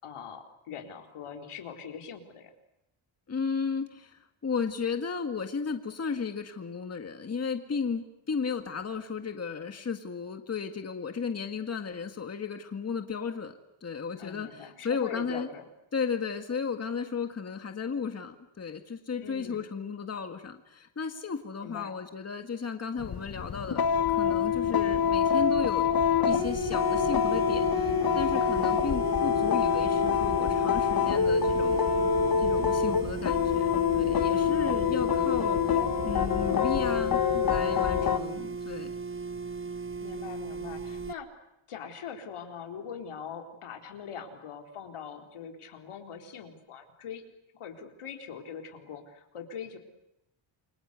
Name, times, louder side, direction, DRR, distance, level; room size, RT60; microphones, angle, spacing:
voice 1, 0.0-2.5 14.2-15.6 19.2-19.7 21.6-21.9 37.9-38.3 40.0-41.3 41.7-47.2 47.5-49.8, left 7 dB, 90° left, 4 dB, 4.2 m, -42 dB
voice 2, 3.3-15.5 15.9-25.9 26.2-31.8 32.4-38.9, left 5 dB, 30° left, 6 dB, 1.9 m, -34 dB
sound 1, 23.0-38.2, left 7 dB, 45° left, 1.5 m, -26 dB
sound 2, 26.3-41.1, right 4 dB, 25° right, 1.1 m, -37 dB
28.5 x 24.0 x 8.3 m, 0.85 s
wide cardioid pair, 150°, 49 cm